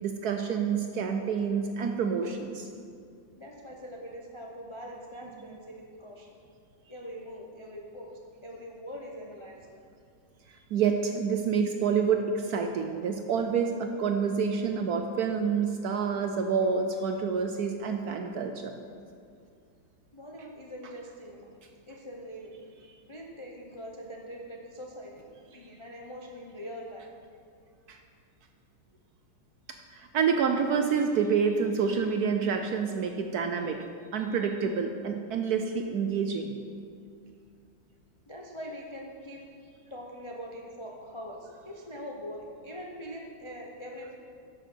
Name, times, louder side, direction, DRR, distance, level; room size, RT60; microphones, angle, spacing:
voice 1, 0.0-2.7 10.7-18.7 27.9-28.0 29.9-33.9 34.1-36.5, right 6 dB, 70° right, 5 dB, 0.9 m, -28 dB
voice 2, 3.4-6.4 6.9-9.6 20.1-21.5 21.9-22.6 23.1-25.2 25.5-27.1 38.3-39.4 39.9-44.2, equal, 40° left, -1 dB, 0.4 m, -43 dB
10.5 x 6.8 x 6.3 m, 2.3 s
omnidirectional pair, 2.1 m